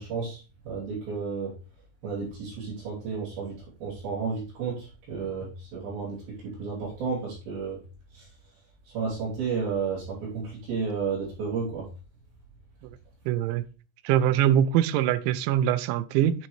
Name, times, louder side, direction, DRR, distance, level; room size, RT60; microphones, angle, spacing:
voice 1, 0.0-1.5 2.0-7.8 8.1-8.3 8.9-11.9, right 5 dB, 55° right, 4.5 m, -32 dB
voice 2, 13.3-13.6 14.0-16.5, right 10 dB, 90° right, 3.0 m, -23 dB
8.9 x 5.5 x 3.1 m
omnidirectional pair, 5.2 m